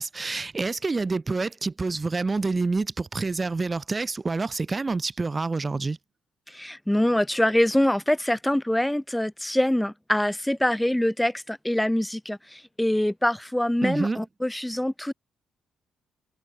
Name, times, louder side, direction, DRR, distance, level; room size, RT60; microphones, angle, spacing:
voice 1, 0.0-6.0 13.8-14.2, right 3 dB, 25° right, 6.4 m, -27 dB
voice 2, 6.5-15.1, left 1 dB, 5° left, 4.5 m, -24 dB
cardioid pair, 90°, 0 cm